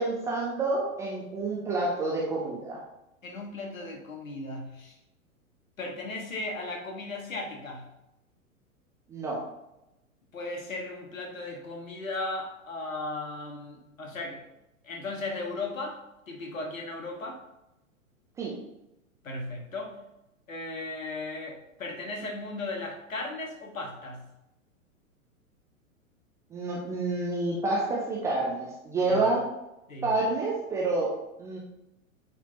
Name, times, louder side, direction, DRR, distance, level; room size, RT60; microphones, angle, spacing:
voice 1, 0.0-2.8 9.1-9.5 18.4-18.6 26.5-29.5 30.0-31.6, right 2 dB, 5° right, -4 dB, 0.4 m, -29 dB
voice 2, 3.2-5.0 5.8-7.9 10.3-14.5 14.8-17.4 19.2-20.0 20.5-24.3 29.0-29.2 29.9-30.1, left 2 dB, 70° left, 1 dB, 1.7 m, -36 dB
8.9 x 4.2 x 2.9 m, 0.89 s
figure-of-eight pair, 105°, 42 cm